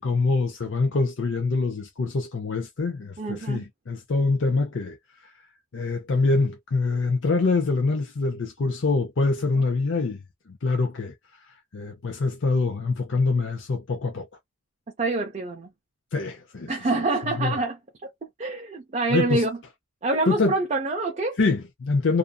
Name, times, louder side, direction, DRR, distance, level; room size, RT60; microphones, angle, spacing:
voice 1, 0.0-5.3 5.7-10.2 10.5-14.3 16.1-16.7 17.4-17.6 19.1-19.4 20.3-20.6 21.4-22.2, left 3 dB, 60° left, 0.5 m, -25 dB
voice 2, 3.2-3.6 15.0-15.7 16.7-19.6 20.0-21.4, right 3 dB, 35° right, 0.5 m, -26 dB
2.5 x 2.5 x 2.2 m
head